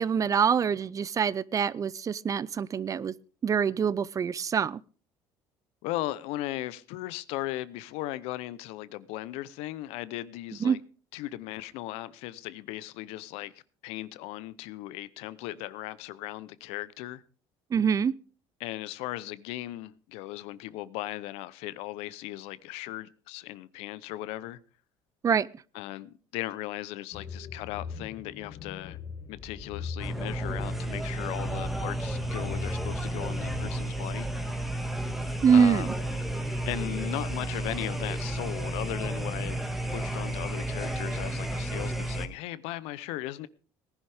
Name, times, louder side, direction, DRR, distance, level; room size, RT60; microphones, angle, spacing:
voice 1, 0.0-3.1 3.4-4.8 10.6-10.8 17.7-18.1 25.2-25.5 35.4-35.8, right 7 dB, 35° right, 0.5 m, -24 dB
voice 2, 5.8-10.8 11.1-13.5 13.8-17.2 18.6-24.6 25.7-29.0 29.3-34.3 35.5-35.9 36.7-39.6 39.9-43.5, left 16 dB, 80° left, 0.7 m, -37 dB
sound 1, 27.1-34.6, left 5 dB, 45° left, 2.0 m, -41 dB
sound 2, 30.0-42.3, right 1 dB, ahead, 1.8 m, -32 dB
18.0 x 11.0 x 3.5 m
supercardioid pair, 100°, 10 cm